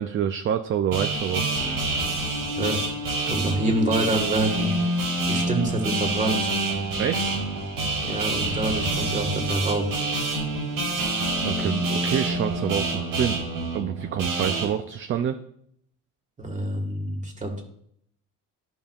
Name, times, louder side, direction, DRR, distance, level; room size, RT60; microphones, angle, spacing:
voice 1, 0.0-1.4 7.0-7.3 11.4-13.4 13.7-15.4, right 9 dB, 40° right, 8 dB, 0.4 m, -27 dB
sound 1, 0.9-14.6, right 2 dB, 90° right, 3.4 m, -27 dB
voice 2, 3.3-4.7 5.3-6.5 8.0-10.0 16.4-17.6, right 2 dB, 20° right, 3 dB, 1.6 m, -26 dB
13.5 x 5.3 x 2.4 m, 0.70 s
cardioid pair, 135°, 33 cm